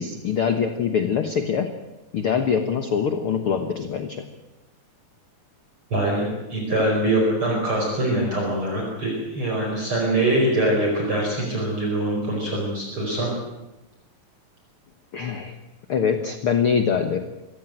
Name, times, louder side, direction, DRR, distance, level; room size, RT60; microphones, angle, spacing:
voice 1, 0.0-1.7 2.1-4.2 15.1-15.6 15.9-17.3, left 7 dB, 55° left, 7 dB, 1.7 m, -23 dB
voice 2, 5.9-13.3, right 1 dB, 35° right, -1 dB, 5.6 m, -23 dB
24.0 x 15.5 x 9.1 m, 1.0 s
omnidirectional pair, 3.9 m